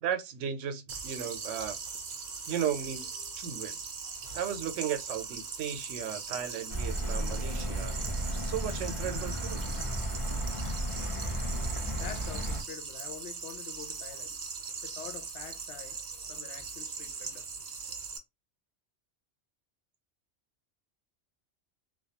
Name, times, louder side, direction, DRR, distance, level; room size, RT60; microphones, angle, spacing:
voice 1, 0.0-1.8 2.5-3.1 3.4-3.8 4.3-7.9 8.4-9.6, right 9 dB, 80° right, 0.9 m, -35 dB
sound 1, 0.9-18.2, right 5 dB, 55° right, 0.5 m, -40 dB
sound 2, 6.7-12.6, right 1 dB, 40° left, 0.4 m, -34 dB
voice 2, 12.0-14.4 14.8-16.0 16.3-17.5, left 9 dB, 70° left, 0.9 m, -46 dB
2.3 x 2.2 x 2.8 m
omnidirectional pair, 1.2 m